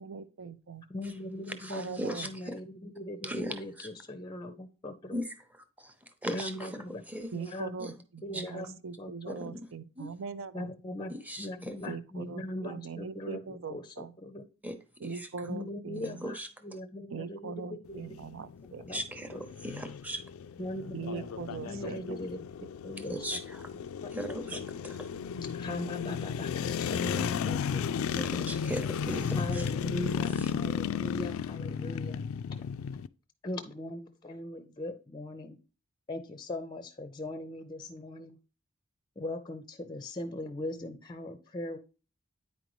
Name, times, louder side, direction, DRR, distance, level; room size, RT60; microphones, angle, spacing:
voice 1, 0.0-0.9 1.7-2.3 7.3-10.7 11.9-14.1 15.0-16.3 17.1-18.9 20.9-22.2 22.6-22.7, right 5 dB, 65° right, 0.5 m, -41 dB
voice 2, 0.9-5.2 6.3-7.0 7.3-7.8 8.2-9.6 10.5-14.4 15.4-18.1 18.8-19.0 19.3-19.4 20.6-21.3 21.6-22.5 22.8-23.4 24.0-24.6 25.5-27.8 29.3-32.2 33.4-35.6 36.1-38.4 39.2-41.8, left 1 dB, 20° left, 0.5 m, -40 dB
voice 3, 1.6-2.3 3.2-3.9 5.1-5.3 6.2-6.8 7.1-7.3 7.8-7.9 8.3-8.4 9.3-9.4 10.0-10.1 11.3-11.7 14.6-14.8 16.2-16.5 18.9-19.4 19.6-20.2 23.1-23.4 24.1-24.6 28.1-29.6, equal, 5° right, 0.8 m, -37 dB
sound 1, 17.9-33.1, left 7 dB, 75° left, 0.3 m, -34 dB
9.0 x 5.1 x 3.0 m
head